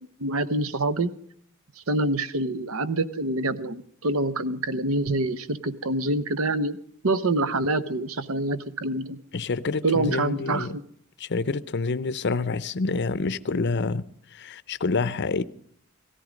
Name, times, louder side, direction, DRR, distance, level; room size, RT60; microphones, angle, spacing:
voice 1, 0.2-1.1 1.9-6.8 7.0-9.2 9.8-10.8, right 2 dB, 70° right, 1.0 m, -26 dB
voice 2, 9.3-10.7 11.2-14.0 14.3-15.4, left 4 dB, 55° left, 0.7 m, -27 dB
18.0 x 14.0 x 5.2 m
head